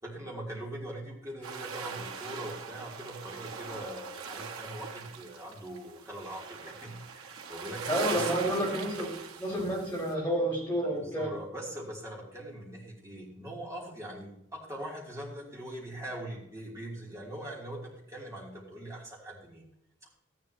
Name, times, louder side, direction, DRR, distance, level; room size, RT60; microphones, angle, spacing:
voice 1, 0.0-8.4 10.9-19.6, right 1 dB, 15° right, -3 dB, 3.0 m, -42 dB
sound 1, 1.4-10.1, right 5 dB, 85° right, 1.4 m, -41 dB
voice 2, 7.9-9.1 9.4-11.3, right 1 dB, 10° left, -5 dB, 4.8 m, -30 dB
13.5 x 10.5 x 2.9 m, 0.78 s
head